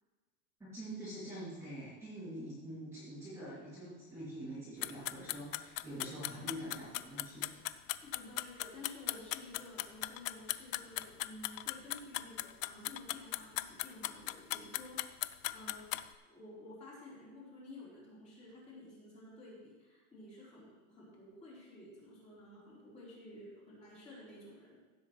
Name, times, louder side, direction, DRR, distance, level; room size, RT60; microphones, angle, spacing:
voice 1, 0.6-7.5, right 1 dB, 5° right, -11 dB, 2.6 m, -45 dB
sound 1, 4.8-16.0, left 17 dB, 65° left, 0.5 m, -38 dB
voice 2, 6.3-6.7 7.4-7.5 8.0-15.0 15.4-24.8, left 1 dB, 15° left, -7 dB, 3.9 m, -52 dB
16.0 x 8.1 x 3.2 m, 1.3 s
supercardioid pair, 165°, 43 cm